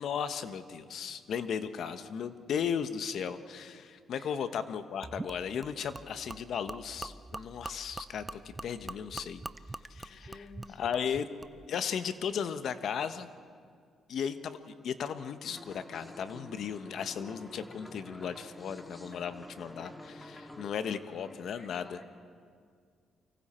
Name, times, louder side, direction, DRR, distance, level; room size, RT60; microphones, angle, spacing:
voice 1, 0.0-9.4 9.9-10.4 10.8-11.3 11.7-13.3 14.1-14.6 14.8-22.0, left 7 dB, 65° left, 10 dB, 1.0 m, -36 dB
Gurgling / Liquid, 5.0-11.8, right 2 dB, 20° right, 0.5 m, -44 dB
voice 2, 10.0-11.0 20.8-22.0, left 3 dB, 35° left, 1 dB, 3.3 m, -53 dB
sound 1, 15.4-20.7, equal, 10° left, 1.7 m, -48 dB
30.0 x 24.5 x 4.4 m, 2.1 s
cardioid pair, 90°, 0 cm